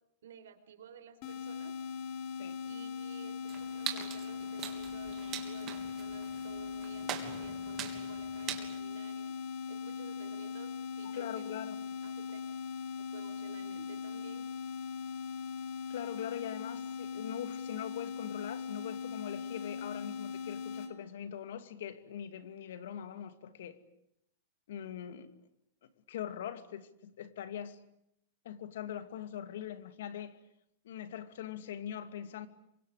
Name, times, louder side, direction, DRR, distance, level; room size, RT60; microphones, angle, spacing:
voice 1, 0.2-1.8 2.6-11.6 12.0-12.4 13.1-14.4, right 8 dB, 90° right, 4.8 m, -53 dB
sound 1, 1.2-20.9, left 6 dB, 45° left, 3.2 m, -40 dB
sound 2, 3.5-8.7, right 10 dB, 30° right, 3.4 m, -43 dB
voice 2, 11.1-11.8 15.9-23.8 24.7-25.3 26.1-27.8 28.4-30.4 30.8-32.5, left 10 dB, 75° left, 2.6 m, -42 dB
28.0 x 24.5 x 8.4 m
supercardioid pair, 150°, 0 cm